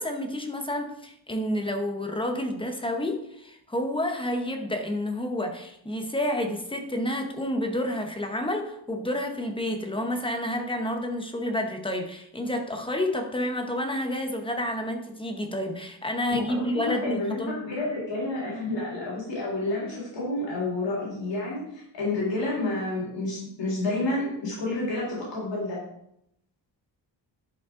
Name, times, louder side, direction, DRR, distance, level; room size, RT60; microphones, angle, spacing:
voice 1, 0.0-17.6, left 1 dB, 10° left, 4 dB, 0.9 m, -29 dB
voice 2, 16.6-25.8, left 2 dB, 70° left, -5 dB, 3.5 m, -30 dB
11.0 x 5.3 x 3.7 m, 0.76 s
wide cardioid pair, 165°, 45 cm